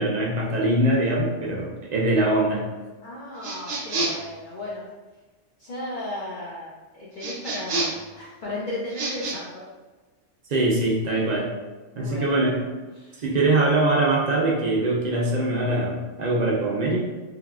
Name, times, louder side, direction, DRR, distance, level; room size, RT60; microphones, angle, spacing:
voice 1, 0.0-2.7 10.5-11.5 12.0-12.6 13.2-17.0, right 2 dB, 55° right, -3 dB, 0.5 m, -22 dB
voice 2, 3.0-4.8 5.6-9.7 11.9-12.6 12.9-13.3, left 1 dB, 55° left, -6 dB, 0.5 m, -35 dB
sound 1, 3.4-4.3 7.2-8.1 8.9-9.4, right 2 dB, 90° right, 1.0 m, -28 dB
3.4 x 2.3 x 2.3 m, 1.2 s
omnidirectional pair, 1.2 m